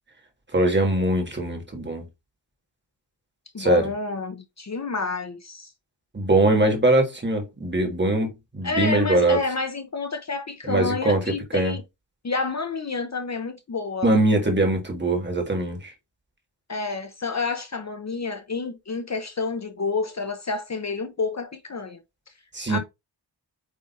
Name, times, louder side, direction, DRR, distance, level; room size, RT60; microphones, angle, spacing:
voice 1, 0.5-2.0 3.6-3.9 6.1-8.3 8.5-9.4 10.6-11.2 11.5-11.7 14.0-15.9 22.5-22.8, right 2 dB, 25° right, 1.6 m, -21 dB
voice 2, 3.5-5.7 8.6-11.8 12.2-14.1 16.7-22.0 22.7-22.8, left 4 dB, 35° left, 0.8 m, -29 dB
8.6 x 2.9 x 4.0 m
wide cardioid pair, 170°, 45 cm